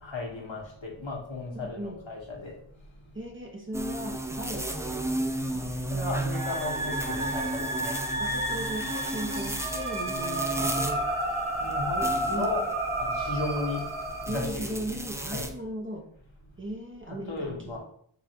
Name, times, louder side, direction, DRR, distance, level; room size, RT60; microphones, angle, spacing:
voice 1, 0.0-2.5 5.9-7.9 11.6-12.6 13.0-13.9 14.3-14.8 15.3-15.5 17.1-17.8, left 3 dB, 70° left, -2 dB, 1.5 m, -35 dB
voice 2, 1.5-2.0 3.1-5.8 8.2-11.1 11.9-12.5 14.2-16.1 16.6-17.8, right 1 dB, 25° right, 1 dB, 0.9 m, -37 dB
sound 1, 3.7-15.5, right 1 dB, 5° right, 0.4 m, -34 dB
sound 2, 6.3-14.4, right 1 dB, 85° right, 1.2 m, -31 dB
4.0 x 2.7 x 4.6 m, 0.63 s
wide cardioid pair, 55°, 48 cm